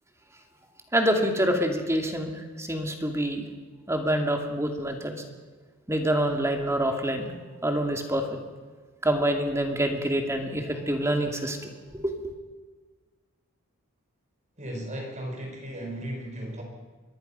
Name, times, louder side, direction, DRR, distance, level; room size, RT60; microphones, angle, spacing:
voice 1, 0.9-2.3 2.6-3.4 3.9-5.2 5.9-7.3 7.6-8.2 9.0-12.3, right 1 dB, 15° right, 3 dB, 2.5 m, -26 dB
voice 2, 14.6-16.6, right 1 dB, 35° right, 2 dB, 4.7 m, -35 dB
26.0 x 21.5 x 5.7 m, 1.4 s
head